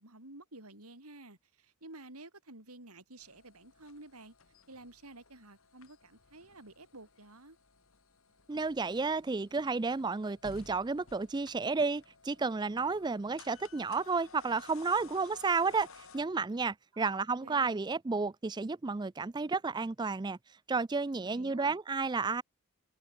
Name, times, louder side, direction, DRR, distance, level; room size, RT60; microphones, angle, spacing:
voice 1, 0.0-4.3 4.7-7.6 16.9-17.9 21.2-21.8, right 2 dB, 85° right, 6.5 m, -52 dB
sound 1, 3.2-16.2, left 4 dB, 65° left, 1.9 m, -56 dB
voice 2, 8.5-20.4 20.7-22.4, right 4 dB, 20° right, 0.4 m, -32 dB
head